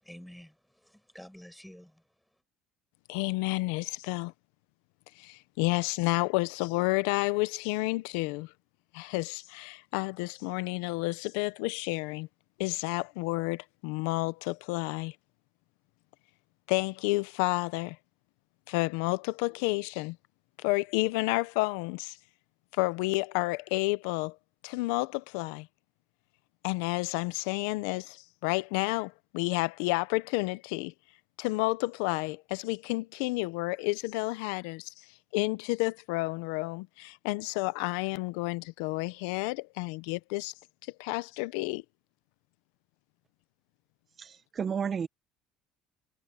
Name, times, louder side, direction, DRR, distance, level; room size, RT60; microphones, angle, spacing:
voice 1, 0.0-2.0, equal, ahead, 5.4 m, -50 dB
voice 2, 3.1-4.3 5.2-8.5 8.9-12.3 12.6-15.2 16.7-18.0 18.7-20.2 20.6-22.2 22.7-24.4 24.6-25.7 26.6-30.9 31.4-34.9 35.3-40.5 41.0-41.8, left 22 dB, 90° left, 0.6 m, -30 dB
voice 3, 44.2-45.1, right 7 dB, 35° right, 1.0 m, -32 dB
cardioid pair, 120°, 0 cm